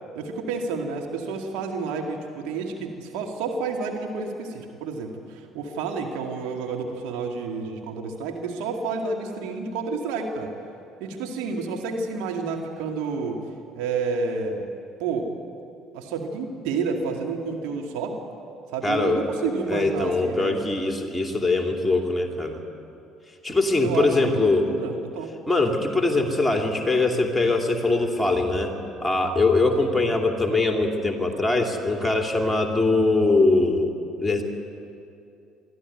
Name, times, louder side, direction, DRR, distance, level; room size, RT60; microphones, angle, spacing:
voice 1, 0.1-10.5 11.0-13.4 13.7-14.7 15.0-15.3 15.9-18.2 18.7-20.6 23.8-25.3 29.8-29.9, right 4 dB, 65° right, 2 dB, 2.2 m, -30 dB
voice 2, 18.8-19.2 19.7-22.6 23.4-24.7 25.5-28.7 29.0-33.9 34.2-34.4, left 2 dB, 5° left, 2 dB, 3.0 m, -22 dB
23.0 x 14.0 x 9.5 m, 2.6 s
figure-of-eight pair, 55°, 0 cm